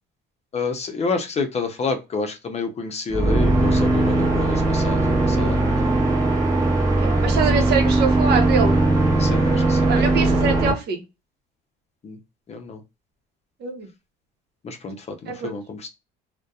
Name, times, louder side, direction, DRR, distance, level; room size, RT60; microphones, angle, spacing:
voice 1, 0.5-6.0 9.2-9.9 12.0-12.2 12.5-12.8 14.6-15.0 15.2-15.9, left 4 dB, 35° left, 6 dB, 0.6 m, -29 dB
sound 1, 3.1-10.7, right 2 dB, 20° right, 1.0 m, -19 dB
voice 2, 6.9-8.8 9.9-11.0 13.6-13.9 15.3-15.5, right 5 dB, 60° right, 4 dB, 0.8 m, -24 dB
2.6 x 2.1 x 2.3 m, 0.25 s
supercardioid pair, 90°, 19 cm